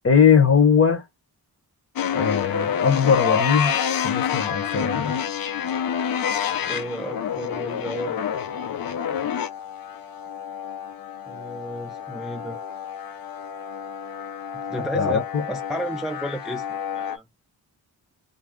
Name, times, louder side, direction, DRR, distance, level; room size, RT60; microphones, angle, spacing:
voice 1, 0.0-1.0 2.1-3.7 4.0-5.2 14.9-15.4, left 6 dB, 35° left, 0.9 m, -20 dB
sound 1, 2.0-17.2, left 8 dB, 65° left, 0.6 m, -28 dB
voice 2, 6.6-8.3 11.3-12.6 14.7-15.2 15.5-17.2, equal, ahead, 0.3 m, -32 dB
2.6 x 2.2 x 3.4 m
wide cardioid pair, 110°, 39 cm